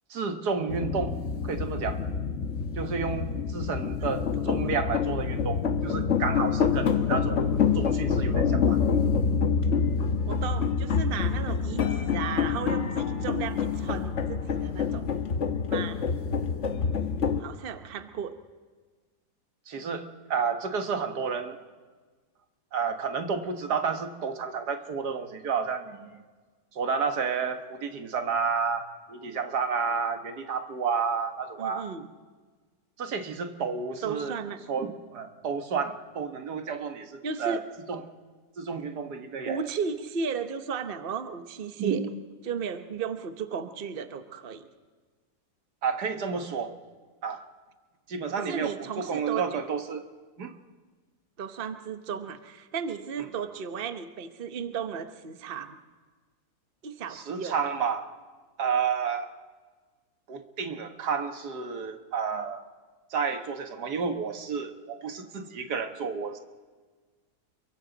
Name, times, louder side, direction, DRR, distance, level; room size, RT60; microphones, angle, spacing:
voice 1, 0.1-1.2 1.4-2.0 2.8-8.8 19.7-21.6 22.7-26.2 26.7-31.9 33.0-34.4 34.7-37.6 37.9-38.0 38.6-39.6 41.8-42.1 45.8-46.7 47.2-47.4 48.1-50.0 50.4-50.6 57.1-58.1 58.6-59.3 60.3-62.6 63.1-66.4, right 5 dB, 80° right, 6 dB, 1.9 m, -31 dB
sound 1, 0.7-17.4, left 6 dB, 50° left, 1.3 m, -27 dB
voice 2, 10.3-15.0 15.7-16.0 17.3-18.3 31.6-32.1 34.0-34.6 37.2-37.6 39.4-42.0 42.4-44.7 48.4-49.6 51.4-55.8 56.8-57.7, right 6 dB, 40° right, 8 dB, 1.1 m, -35 dB
28.5 x 23.0 x 4.0 m, 1.4 s
omnidirectional pair, 1.7 m